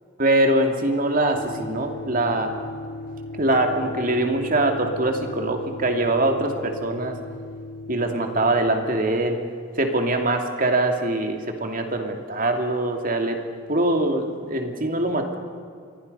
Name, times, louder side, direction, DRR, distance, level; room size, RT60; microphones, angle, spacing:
voice 1, 0.2-2.5 3.4-7.1 7.9-9.4 9.8-13.4 13.7-15.4, right 1 dB, 45° right, 4 dB, 2.6 m, -23 dB
sound 1, 1.3-9.1, left 2 dB, 60° left, 2.8 m, -37 dB
29.0 x 23.5 x 5.5 m, 2.1 s
head